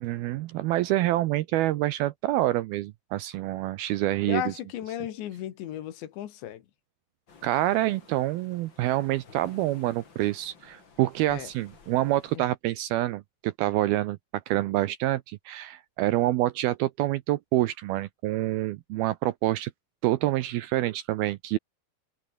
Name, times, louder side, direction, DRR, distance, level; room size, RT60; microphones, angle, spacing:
voice 1, 0.0-4.4 7.4-14.2 14.5-19.7 20.0-21.6, right 15 dB, 80° right, 2.3 m, -27 dB
voice 2, 4.3-6.6 11.3-11.5 12.3-12.4, left 12 dB, 80° left, 4.1 m, -35 dB
sound 1, 7.3-12.4, left 5 dB, 30° left, 2.9 m, -54 dB
omnidirectional pair, 5.1 m